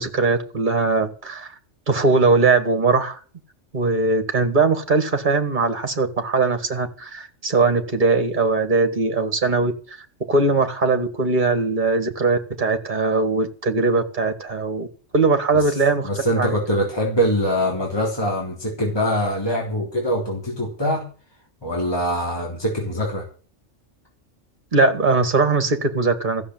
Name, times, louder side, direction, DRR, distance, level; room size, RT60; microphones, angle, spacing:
voice 1, 0.0-1.5 1.9-3.2 3.7-10.0 10.3-14.9 15.1-16.1 16.4-16.6 24.7-26.5, right 3 dB, 40° right, 8 dB, 2.0 m, -20 dB
voice 2, 16.0-21.0 21.6-23.2, equal, 20° left, -2 dB, 3.5 m, -23 dB
14.5 x 7.0 x 9.3 m, 0.40 s
omnidirectional pair, 1.3 m